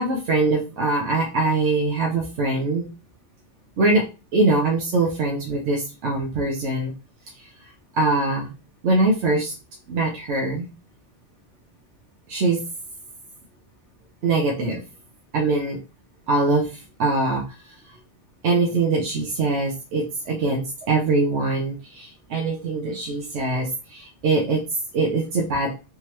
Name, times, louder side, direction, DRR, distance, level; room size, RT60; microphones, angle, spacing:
voice 1, 0.0-2.9 3.8-4.0 4.3-6.9 8.0-8.5 8.8-9.5 9.9-10.7 12.3-12.6 14.2-14.8 15.3-15.8 16.3-17.4 18.4-24.6 24.9-25.7, right 2 dB, 80° right, -1 dB, 1.1 m, -22 dB
3.5 x 3.2 x 2.9 m, 0.31 s
omnidirectional pair, 1.2 m